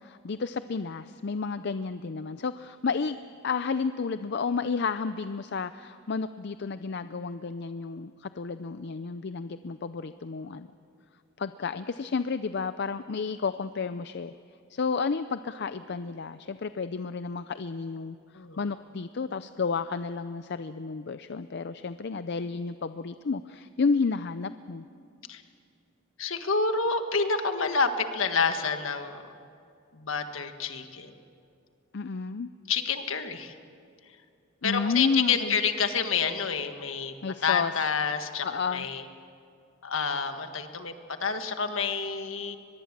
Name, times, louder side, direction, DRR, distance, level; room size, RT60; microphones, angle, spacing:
voice 1, 0.0-3.2 3.4-10.7 11.4-14.3 14.7-24.8 31.9-32.5 34.6-35.6 37.2-37.7 38.4-38.9, left 5 dB, 55° left, 12 dB, 0.5 m, -31 dB
voice 2, 26.2-29.3 29.9-31.1 32.7-33.5 34.6-37.1 37.4-39.0 39.8-40.9 41.2-42.6, left 5 dB, 70° left, 7 dB, 1.6 m, -28 dB
23.5 x 21.5 x 7.4 m, 2.5 s
head